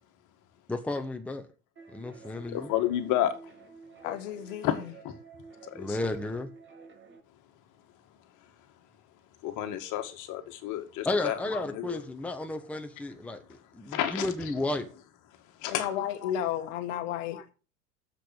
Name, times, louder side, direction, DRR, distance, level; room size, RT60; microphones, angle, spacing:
voice 1, 0.7-1.5 1.9-2.7 5.7-6.5 11.0-14.9, left 2 dB, 5° left, 1.1 m, -33 dB
sound 1, 1.7-7.2, right 4 dB, 25° right, 2.4 m, -50 dB
voice 2, 2.3-3.3 4.6-5.1 5.7-6.0 9.4-12.0 13.9-14.3 15.6-15.8, left 12 dB, 45° left, 2.0 m, -31 dB
voice 3, 4.0-4.7 15.7-17.5, left 10 dB, 60° left, 1.3 m, -32 dB
7.5 x 6.6 x 7.8 m
hypercardioid pair, 90°, 43 cm